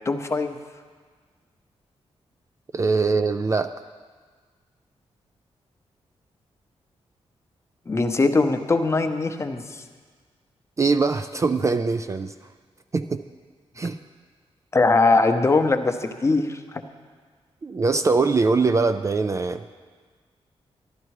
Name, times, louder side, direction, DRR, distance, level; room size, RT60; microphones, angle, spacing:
voice 1, 0.1-0.6 7.9-9.8 14.7-16.8, left 3 dB, 25° left, 7 dB, 0.7 m, -21 dB
voice 2, 2.7-3.7 10.8-12.3 12.9-13.2 13.8-14.0 17.6-19.6, right 4 dB, 30° right, 9 dB, 0.3 m, -22 dB
12.0 x 12.0 x 4.7 m, 1.5 s
wide cardioid pair, 130°, 11 cm